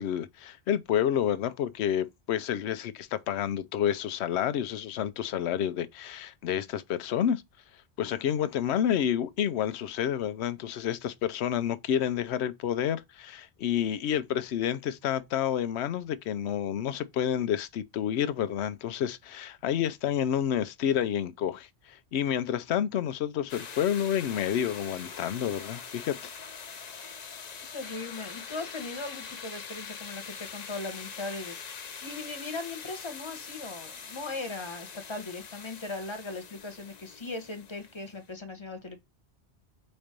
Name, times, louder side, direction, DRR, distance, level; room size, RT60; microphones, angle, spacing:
voice 1, 0.0-7.4 8.0-26.3, left 9 dB, 75° left, 0.9 m, -29 dB
sound 1, 23.5-38.3, left 6 dB, 45° left, 0.7 m, -43 dB
voice 2, 27.7-39.0, left 3 dB, 25° left, 1.2 m, -39 dB
4.4 x 4.1 x 5.1 m
omnidirectional pair, 1.1 m